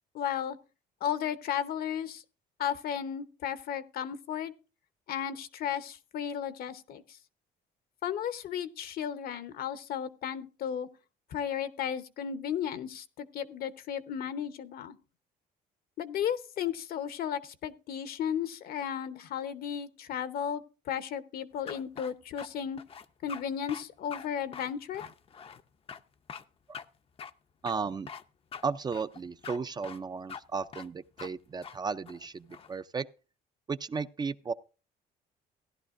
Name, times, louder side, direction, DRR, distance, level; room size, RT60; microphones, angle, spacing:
voice 1, 0.1-0.6 1.0-2.2 2.6-4.5 5.1-7.0 8.0-10.9 11.3-15.0 16.0-22.8 23.2-25.0, left 9 dB, 60° left, 0.9 m, -34 dB
sound 1, 21.7-22.5 22.8-23.4 23.7-23.8 24.1-24.3 24.5-25.6 25.9-26.0 26.3-26.4 26.7-26.8 27.2-27.3 27.6-28.2 28.5-28.6 28.9-29.6 29.8-30.0 30.3-30.4 30.7-30.9 31.2-31.3 31.6-31.7 32.0-32.7, left 7 dB, 35° left, 0.5 m, -43 dB
voice 2, 27.6-28.1 28.6-33.1 33.7-34.5, right 5 dB, 25° right, 0.4 m, -34 dB
16.0 x 11.0 x 2.5 m
cardioid pair, 110°, 17 cm